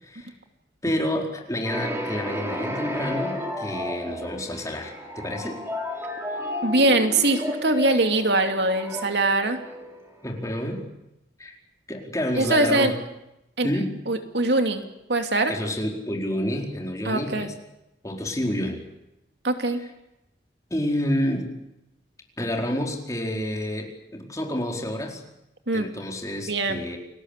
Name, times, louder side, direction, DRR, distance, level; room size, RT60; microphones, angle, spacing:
voice 1, 0.0-0.3 0.8-5.6 10.2-10.8 11.4-11.6 11.9-12.9 13.6-13.9 15.5-17.5 18.0-18.8 20.7-21.5 22.4-25.2 25.7-27.0, left 1 dB, 20° left, 1 dB, 4.5 m, -29 dB
sound 1, 1.6-10.4, left 1 dB, 15° right, 4.7 m, -33 dB
voice 2, 6.6-9.6 12.4-12.9 13.6-13.7 14.1-14.8 15.1-15.5 17.0-17.5 19.4-19.8 25.7-25.9 26.5-26.8, right 2 dB, 70° right, 6 dB, 2.8 m, -22 dB
29.5 x 20.0 x 8.4 m, 0.88 s
head